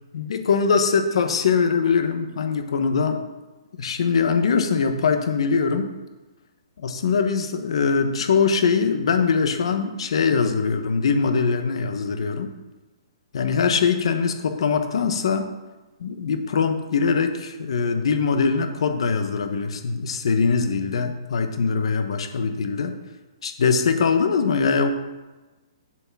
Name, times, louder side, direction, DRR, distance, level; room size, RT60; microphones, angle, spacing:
voice 1, 0.1-3.2 3.8-5.9 6.8-12.5 13.3-15.5 16.0-22.9 23.4-24.9, left 5 dB, 70° left, 7 dB, 1.3 m, -22 dB
7.6 x 6.1 x 6.2 m, 1.2 s
hypercardioid pair, 155°, 3 cm